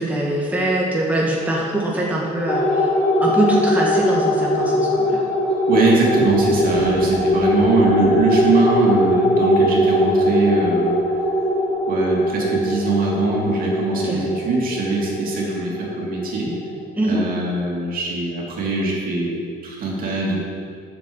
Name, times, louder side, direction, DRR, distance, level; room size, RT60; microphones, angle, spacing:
voice 1, 0.0-2.9 3.2-5.2 6.7-6.9 13.9-14.2 17.0-17.2, right 1 dB, 10° right, -4 dB, 1.7 m, -22 dB
sound 1, 2.5-17.2, equal, 20° left, 2.9 m, -20 dB
voice 2, 5.7-11.0 11.9-16.6 17.0-20.4, right 3 dB, 60° right, -3 dB, 2.9 m, -22 dB
8.2 x 7.1 x 7.2 m, 2.2 s
cardioid pair, 110°, 17 cm